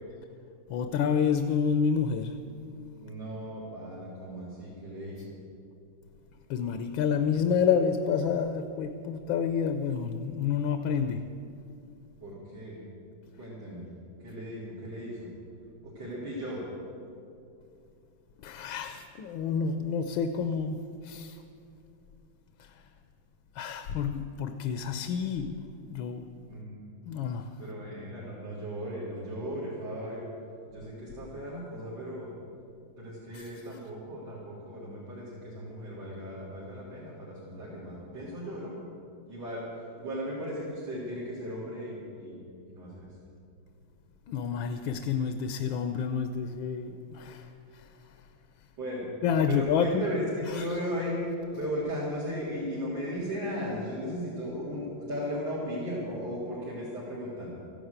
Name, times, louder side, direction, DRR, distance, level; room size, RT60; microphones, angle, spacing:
voice 1, 0.7-2.4 6.5-11.3 18.4-21.4 22.6-22.8 23.5-26.3 27.1-27.6 33.3-33.5 44.3-47.9 49.2-50.0 50.5-50.8, left 6 dB, 80° left, 8 dB, 1.5 m, -29 dB
voice 2, 3.0-5.4 12.2-12.8 13.4-13.9 14.2-15.3 15.8-16.6 26.5-26.7 27.6-30.2 30.7-32.3 33.0-38.7 39.3-42.4 42.7-43.1 48.8-49.1 49.5-51.2 51.5-57.5, equal, 75° right, -11 dB, 4.5 m, -36 dB
15.0 x 11.5 x 8.0 m, 2.5 s
omnidirectional pair, 2.1 m